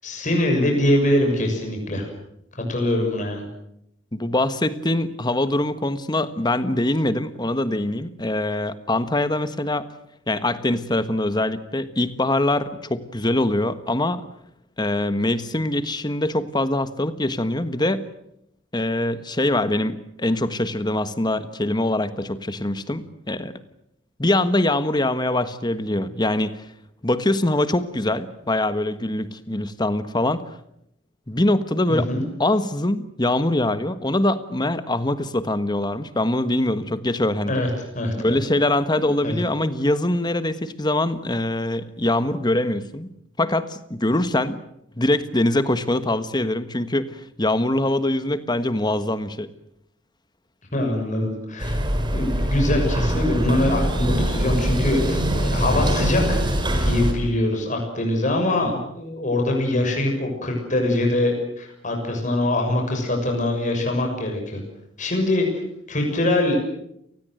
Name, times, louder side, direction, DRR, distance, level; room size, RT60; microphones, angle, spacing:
voice 1, 0.0-2.1 2.7-3.5 31.9-32.2 37.5-37.7 37.9-38.4 39.2-39.4 50.7-51.8 52.1-64.6 65.0-65.6 65.9-66.6, left 1 dB, 40° left, 3 dB, 6.8 m, -23 dB
voice 2, 4.1-9.9 10.3-14.2 14.8-18.1 18.7-23.5 24.2-26.6 27.0-30.4 31.3-32.1 32.4-37.7 38.2-43.1 43.4-44.6 45.0-49.5 58.6-58.7, left 1 dB, 20° left, 12 dB, 1.4 m, -23 dB
sound 1, 51.6-57.1, equal, 25° right, 4.4 m, -23 dB
30.0 x 19.5 x 7.9 m, 0.77 s
head